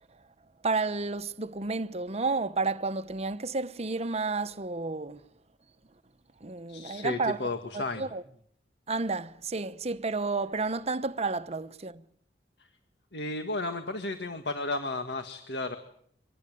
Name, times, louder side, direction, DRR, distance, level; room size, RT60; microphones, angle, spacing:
voice 1, 0.6-5.2 6.4-8.2 8.9-12.1, right 3 dB, 35° right, 0.9 m, -31 dB
voice 2, 6.7-8.0 13.1-15.8, left 2 dB, 70° left, 1.8 m, -33 dB
25.0 x 18.5 x 9.4 m
head